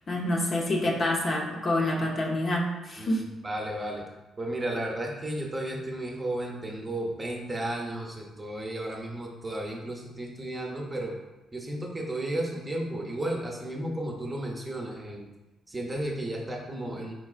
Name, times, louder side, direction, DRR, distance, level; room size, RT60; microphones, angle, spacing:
voice 1, 0.1-3.3, left 1 dB, 40° left, -1 dB, 0.8 m, -27 dB
voice 2, 3.0-4.1 4.4-11.1 11.5-15.3 15.7-17.1, right 1 dB, 20° right, 0 dB, 0.7 m, -33 dB
4.5 x 3.6 x 2.4 m, 1.0 s
cardioid pair, 90°, 0 cm